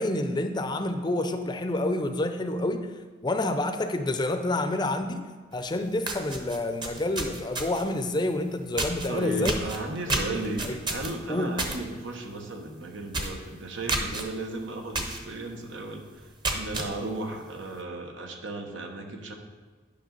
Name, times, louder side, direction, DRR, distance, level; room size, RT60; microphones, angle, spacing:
voice 1, 0.0-2.9 3.2-9.6 10.1-10.8 11.3-11.5, left 1 dB, 25° left, 7 dB, 0.5 m, -28 dB
sound 1, 5.6-5.7 6.0-7.9 8.8-9.1 9.4-11.8 12.1-12.4 12.7-12.8 13.1-13.4 13.9-14.2 14.9-15.2 15.6-15.7 16.2-16.9, right 2 dB, 25° right, 0.8 m, -30 dB
voice 2, 9.1-19.3, right 2 dB, 90° right, 3 dB, 1.1 m, -35 dB
10.0 x 5.5 x 3.9 m, 1.4 s
head